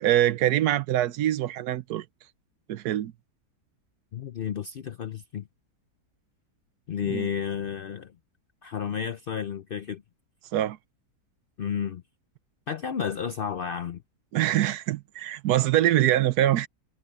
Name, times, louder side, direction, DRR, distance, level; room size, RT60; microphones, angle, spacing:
voice 1, 0.0-2.0 2.7-3.1 7.0-7.3 10.5-10.8 14.3-16.7, right 13 dB, 75° right, 1.2 m, -24 dB
voice 2, 4.1-5.4 6.9-8.1 8.6-10.0 11.6-12.0 12.7-14.0, left 8 dB, 80° left, 0.5 m, -31 dB
omnidirectional pair, 1.7 m